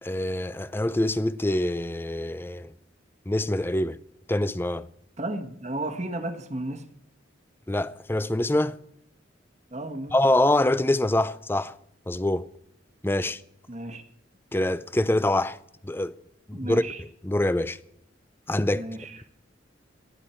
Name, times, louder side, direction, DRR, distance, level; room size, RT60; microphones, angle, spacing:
voice 1, 0.0-2.7 3.3-4.0 4.3-4.9 7.7-8.8 10.1-11.7 12.1-12.5 13.0-13.4 14.5-15.6 15.8-16.2 16.5-17.8 18.5-18.9, left 1 dB, 10° left, 0.4 m, -25 dB
voice 2, 5.2-6.9 9.7-10.2 13.7-14.0 16.5-17.0 18.7-19.2, right 1 dB, 35° right, 1.4 m, -33 dB
19.0 x 13.0 x 4.4 m
head